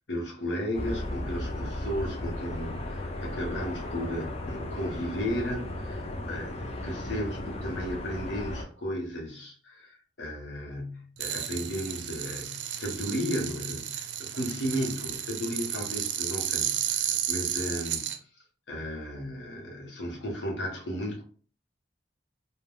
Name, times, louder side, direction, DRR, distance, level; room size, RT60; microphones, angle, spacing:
voice 1, 0.0-18.1 18.7-21.2, equal, 75° left, 0 dB, 1.0 m, -34 dB
sound 1, 0.7-8.6, left 1 dB, 35° left, 0.4 m, -35 dB
sound 2, 11.2-18.2, right 10 dB, 70° right, 0.4 m, -33 dB
3.3 x 2.2 x 2.2 m, 0.44 s
head